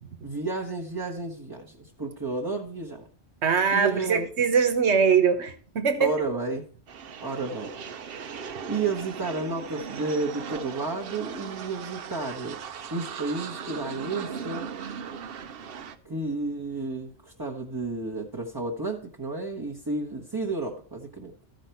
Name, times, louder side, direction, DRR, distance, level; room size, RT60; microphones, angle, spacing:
voice 1, 0.2-3.0 3.7-4.3 6.0-6.7 7.2-7.7 8.1-8.2 8.7-12.6 12.9-14.7 16.0-21.3, right 3 dB, 20° right, -2 dB, 1.0 m, -31 dB
voice 2, 3.4-6.1, right 6 dB, 90° right, 9 dB, 1.3 m, -22 dB
sound 1, 6.9-16.0, right 6 dB, 65° right, 0.9 m, -38 dB
14.0 x 5.2 x 4.4 m, 0.42 s
omnidirectional pair, 1.1 m